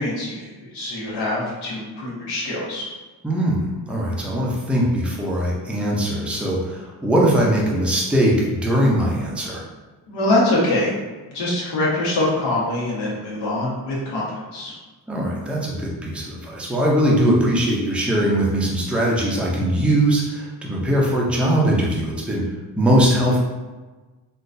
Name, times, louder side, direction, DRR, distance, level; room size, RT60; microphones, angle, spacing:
voice 1, 0.0-2.9 10.1-10.9 11.3-14.7, left 1 dB, 85° left, -6 dB, 1.2 m, -24 dB
voice 2, 3.2-9.6 15.1-22.4 22.8-23.4, right 1 dB, 5° right, -3 dB, 0.4 m, -20 dB
3.8 x 2.3 x 2.5 m, 1.2 s
cardioid pair, 130°, 40 cm